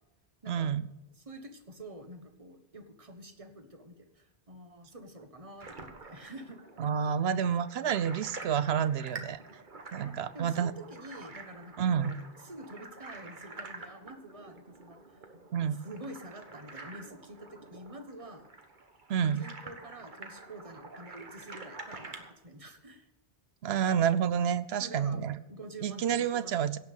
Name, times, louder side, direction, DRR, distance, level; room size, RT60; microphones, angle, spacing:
voice 1, 0.5-0.9 6.8-9.4 9.9-10.7 11.8-12.1 15.5-15.8 19.1-19.4 23.6-25.3 25.8-26.8, right 8 dB, 80° right, 15 dB, 0.9 m, -29 dB
voice 2, 1.2-6.6 10.0-12.2 12.4-15.0 15.8-18.5 19.1-23.1 24.8-25.2 25.5-26.6, right 1 dB, 35° right, 7 dB, 1.4 m, -47 dB
sound 1, 5.6-22.3, right 3 dB, 50° right, 1.5 m, -48 dB
17.0 x 5.9 x 8.3 m, 0.93 s
omnidirectional pair, 1.1 m